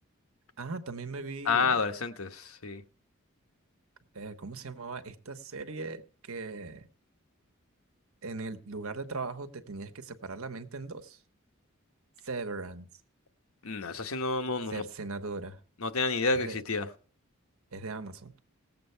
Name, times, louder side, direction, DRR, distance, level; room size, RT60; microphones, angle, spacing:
voice 1, 0.6-1.8 4.1-6.9 8.2-11.2 12.2-12.9 14.7-15.6 16.3-16.6 17.7-18.3, right 3 dB, 75° right, 1.2 m, -39 dB
voice 2, 1.5-2.8 13.6-14.8 15.8-16.9, left 4 dB, 75° left, 1.1 m, -29 dB
18.5 x 7.7 x 4.5 m
head